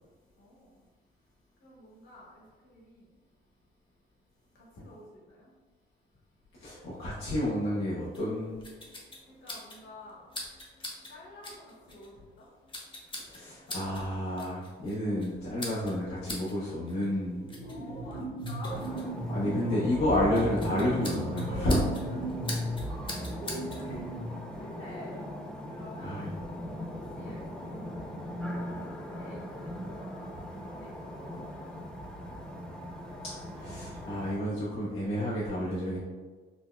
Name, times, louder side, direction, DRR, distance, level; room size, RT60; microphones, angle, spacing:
voice 1, 0.4-0.8 1.6-3.2 4.5-5.5 6.6-6.9 9.2-10.4 11.1-12.5 17.6-19.9 21.5-21.7 22.0-24.1 24.5-25.3 25.7-26.3 26.9-28.4 28.7-32.1, left 1 dB, 70° left, -4 dB, 1.2 m, -50 dB
voice 2, 6.6-8.6 13.3-17.4 19.3-21.8 26.0-26.3 33.2-36.0, left 1 dB, 85° left, -9 dB, 0.8 m, -30 dB
sound 1, 8.1-23.9, left 1 dB, 25° left, 0.8 m, -45 dB
sound 2, 17.4-24.4, right 1 dB, 40° right, 0.9 m, -36 dB
sound 3, 18.7-34.4, equal, 5° left, 0.5 m, -40 dB
4.1 x 2.1 x 2.2 m, 1.4 s
cardioid pair, 90°, 20 cm